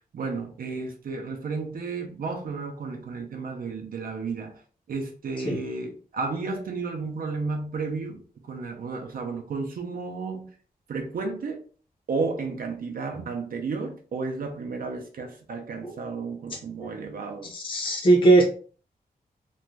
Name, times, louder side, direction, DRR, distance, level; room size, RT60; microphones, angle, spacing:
voice 1, 0.1-4.6 4.9-10.5 10.9-11.6 12.1-17.5, right 4 dB, 65° right, 0.5 m, -32 dB
voice 2, 17.5-18.4, right 2 dB, 30° left, 0.6 m, -18 dB
2.5 x 2.2 x 3.1 m
wide cardioid pair, 155°, 16 cm